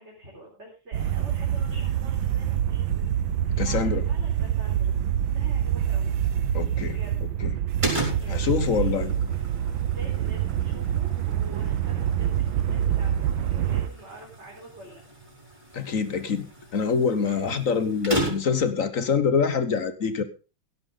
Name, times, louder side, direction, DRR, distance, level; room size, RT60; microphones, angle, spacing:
voice 1, 0.0-3.2 3.6-5.0 5.3-6.2 6.9-7.1 8.1-9.0 9.9-15.0 17.2-17.6, right 1 dB, 35° right, -4 dB, 4.4 m, -46 dB
sound 1, 0.9-13.9, right 10 dB, 85° right, 1.7 m, -26 dB
voice 2, 3.6-4.0 6.5-7.0 7.4-7.5 8.3-9.1 15.7-16.5 16.7-20.2, left 6 dB, 50° left, 12 dB, 1.3 m, -25 dB
sound 2, 7.8-18.7, right 2 dB, 15° right, 5.3 m, -36 dB
16.0 x 12.0 x 3.8 m, 0.32 s
omnidirectional pair, 2.1 m